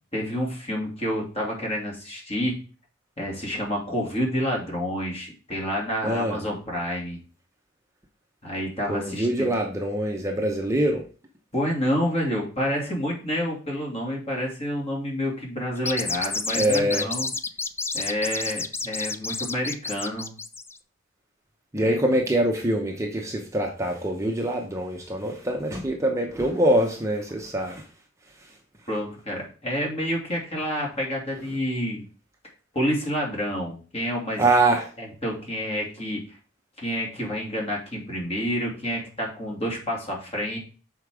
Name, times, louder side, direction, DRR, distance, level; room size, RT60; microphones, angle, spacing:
voice 1, 0.1-2.6 3.2-7.2 8.4-9.5 11.5-17.3 17.9-20.3 21.8-22.0 28.9-32.0 32.7-34.6 35.0-36.2 36.8-40.6, equal, 30° left, -2 dB, 2.7 m, -28 dB
voice 2, 6.0-6.4 8.9-11.0 16.5-17.1 21.7-27.8 34.4-34.9, right 1 dB, 15° right, 1 dB, 0.9 m, -24 dB
sound 1, 15.8-20.8, left 4 dB, 10° left, 0.3 m, -30 dB
6.5 x 4.5 x 4.9 m, 0.37 s
head